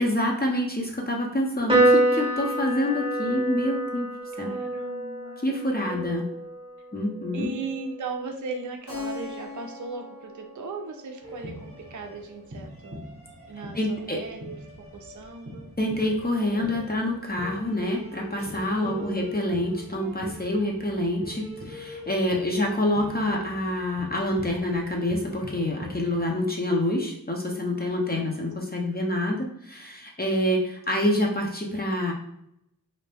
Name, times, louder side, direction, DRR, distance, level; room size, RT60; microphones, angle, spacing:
voice 1, 0.0-4.1 4.4-4.5 5.4-6.2 6.9-7.5 13.7-14.2 15.8-32.1, left 1 dB, 25° left, 0 dB, 0.6 m, -27 dB
Piano, 1.7-8.4, right 1 dB, 15° right, 0.8 m, -27 dB
voice 2, 4.4-5.5 5.9-6.0 7.3-13.0 13.5-14.6 14.9-15.7 18.8-19.3 28.1-28.5, right 4 dB, 55° right, 3 dB, 0.5 m, -37 dB
Keyboard (musical), 8.9-13.4, left 4 dB, 65° left, 1.2 m, -42 dB
sound 1, 11.2-26.3, left 1 dB, 40° right, 0.9 m, -43 dB
2.6 x 2.1 x 3.4 m, 0.76 s
cardioid pair, 40°, 35 cm